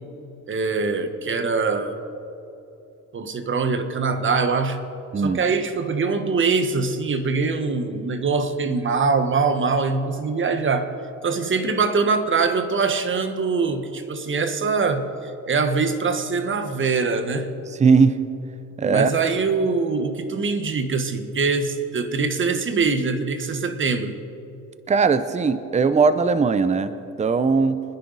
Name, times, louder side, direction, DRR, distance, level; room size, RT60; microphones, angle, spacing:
voice 1, 0.5-2.0 3.1-4.8 5.2-10.9 11.2-17.5 18.8-24.2, right 4 dB, 35° right, 8 dB, 1.4 m, -23 dB
voice 2, 17.8-18.2 18.8-19.1 24.9-27.8, right 5 dB, 20° right, 13 dB, 0.7 m, -19 dB
25.5 x 10.0 x 4.1 m, 2.9 s
cardioid pair, 85°, 33 cm